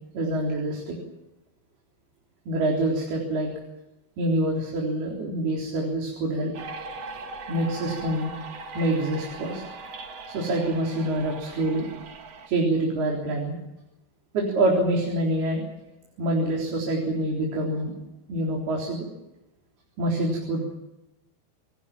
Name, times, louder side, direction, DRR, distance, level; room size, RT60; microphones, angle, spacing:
voice 1, 0.1-1.0 2.5-3.5 4.2-6.5 7.5-8.4 8.8-9.6 10.3-11.9 12.5-13.6 14.3-15.6 16.2-18.0 18.3-19.0 20.0-20.7, right 1 dB, 65° right, -1 dB, 5.7 m, -26 dB
sound 1, 6.5-12.5, right 3 dB, 45° right, 2.5 m, -40 dB
28.0 x 20.0 x 7.4 m, 0.95 s
omnidirectional pair, 5.0 m